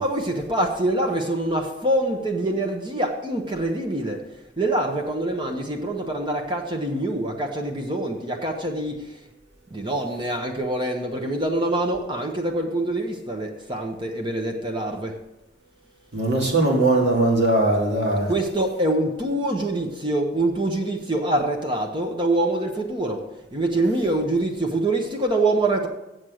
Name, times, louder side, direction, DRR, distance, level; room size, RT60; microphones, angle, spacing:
voice 1, 0.0-4.2 4.6-8.9 9.7-15.1 18.3-23.2 23.5-25.9, right 1 dB, 25° right, 1.0 m, -25 dB
voice 2, 16.1-18.3, right 2 dB, 70° right, 2.4 m, -20 dB
7.7 x 7.4 x 6.3 m
head